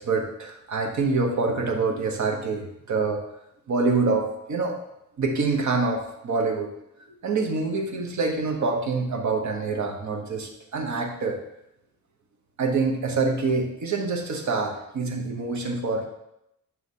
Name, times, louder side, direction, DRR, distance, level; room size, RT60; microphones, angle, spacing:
voice 1, 0.0-3.2 3.7-4.8 5.2-6.7 7.2-11.4 12.6-16.1, right 4 dB, 60° right, 3 dB, 1.1 m, -26 dB
8.0 x 5.7 x 2.8 m, 0.83 s
wide cardioid pair, 135°, 33 cm